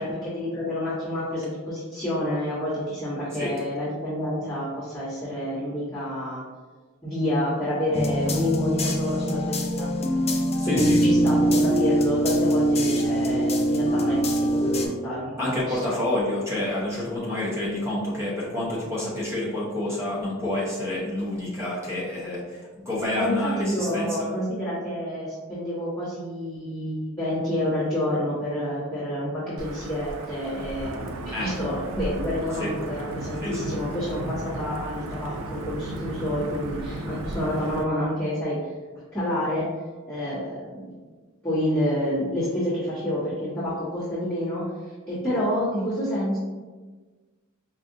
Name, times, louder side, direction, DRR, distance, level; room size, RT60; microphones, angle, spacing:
voice 1, 0.0-6.4 7.0-9.9 10.6-15.9 23.2-31.1 31.4-38.6 39.1-39.7 40.1-40.9 41.4-44.7 45.1-46.4, left 1 dB, 5° left, -16 dB, 1.2 m, -28 dB
sound 1, 7.9-14.9, equal, 30° left, 0.4 m, -23 dB
voice 2, 10.6-11.0 15.4-24.3 31.3-31.5 32.6-32.7 33.4-33.7, left 1 dB, 10° right, -6 dB, 0.8 m, -28 dB
Wind / Thunder / Rain, 29.6-37.8, right 1 dB, 65° right, 0.4 m, -35 dB
4.8 x 2.5 x 2.6 m, 1.3 s
head